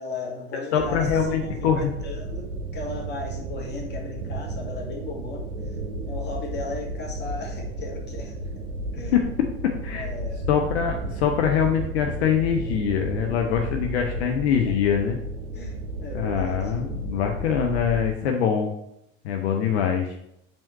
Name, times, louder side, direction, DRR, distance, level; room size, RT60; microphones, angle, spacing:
voice 1, 0.0-5.5 6.0-8.5 8.9-9.2 9.9-10.5 14.0-14.3 14.6-14.9 15.5-16.7, left 3 dB, 30° left, -1 dB, 2.0 m, -36 dB
voice 2, 0.7-1.9 9.1-9.2 9.8-10.1 10.5-15.2 16.1-18.7 19.2-20.2, left 8 dB, 70° left, 3 dB, 0.7 m, -23 dB
sound 1, 0.8-18.1, right 1 dB, 65° right, 0.9 m, -33 dB
5.2 x 3.6 x 5.4 m, 0.80 s
figure-of-eight pair, 75°, 34 cm